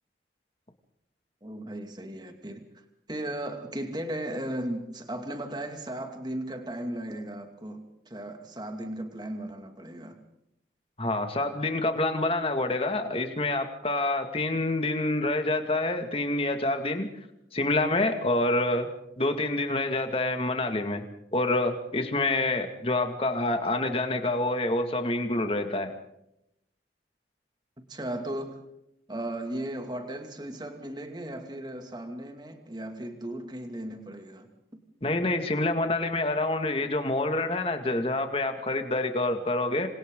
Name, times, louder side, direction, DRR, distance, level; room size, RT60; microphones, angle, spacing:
voice 1, 1.4-2.6 3.1-10.2 27.8-28.7 29.1-34.5, right 1 dB, 25° right, 5 dB, 2.4 m, -36 dB
voice 2, 11.0-17.1 17.5-21.0 21.3-25.9 35.0-39.9, left 2 dB, 30° left, 6 dB, 2.2 m, -27 dB
27.0 x 27.0 x 3.9 m, 0.80 s
head